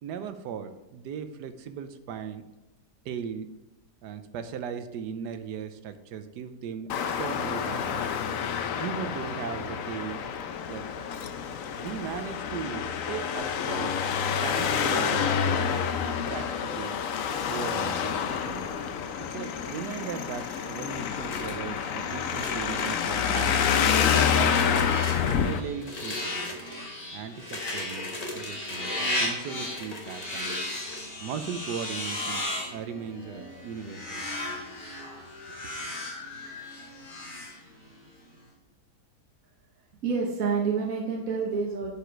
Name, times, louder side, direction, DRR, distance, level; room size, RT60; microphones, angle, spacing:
voice 1, 0.0-2.5 3.0-3.5 4.0-8.1 8.8-10.2 10.7-10.9 11.8-14.0 14.4-15.4 16.0-17.0 17.5-18.7 19.3-23.8 24.3-24.9 25.2-26.6 27.1-30.6 31.2-34.2, right 7 dB, 80° right, 10 dB, 1.3 m, -38 dB
Traffic noise roadway noise, 6.9-25.6, left 7 dB, 65° left, 0.9 m, -28 dB
sound 1, 20.4-20.8 21.2-21.8 22.2-23.0 23.5-24.0 24.5-25.4 25.8-26.8 27.4-29.1 29.6-31.0, left 2 dB, 25° left, 1.0 m, -40 dB
sound 2, 22.2-38.1, left 1 dB, 85° left, 2.5 m, -36 dB
voice 2, 40.0-41.9, right 5 dB, 60° right, 0 dB, 1.4 m, -28 dB
10.0 x 5.0 x 4.5 m, 1.0 s
omnidirectional pair, 1.8 m